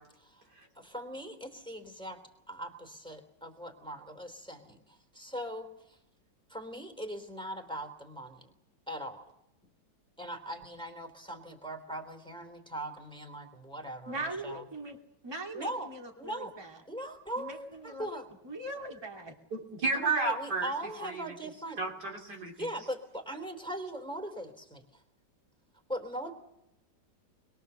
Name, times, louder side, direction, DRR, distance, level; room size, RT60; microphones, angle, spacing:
voice 1, 0.7-6.0 6.5-8.5 8.9-9.2 10.2-14.2 14.4-14.6 15.5-15.9 16.2-16.5 16.9-18.2 19.9-21.8 22.6-25.0 25.9-26.3, right 1 dB, 5° left, 5 dB, 3.3 m, -40 dB
voice 2, 14.1-15.0 15.2-16.8 17.4-18.1 18.4-19.3, right 2 dB, 15° right, 1 dB, 2.5 m, -40 dB
voice 3, 19.5-20.7 21.0-21.2 21.8-22.5, right 3 dB, 70° right, 0 dB, 4.0 m, -31 dB
26.5 x 21.5 x 6.9 m, 0.86 s
omnidirectional pair, 1.9 m